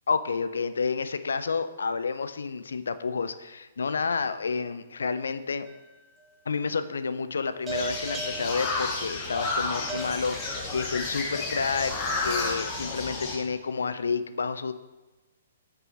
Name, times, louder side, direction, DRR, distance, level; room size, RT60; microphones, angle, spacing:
voice 1, 0.1-5.7 6.5-11.9 12.2-14.7, left 5 dB, 70° left, 12 dB, 0.3 m, -30 dB
sound 1, 5.7-6.3 7.7-12.1, right 3 dB, 15° right, 0.6 m, -40 dB
sound 2, 7.7-13.4, left 3 dB, 30° left, 1.1 m, -31 dB
6.0 x 4.6 x 4.0 m, 1.1 s
figure-of-eight pair, 120°, 0 cm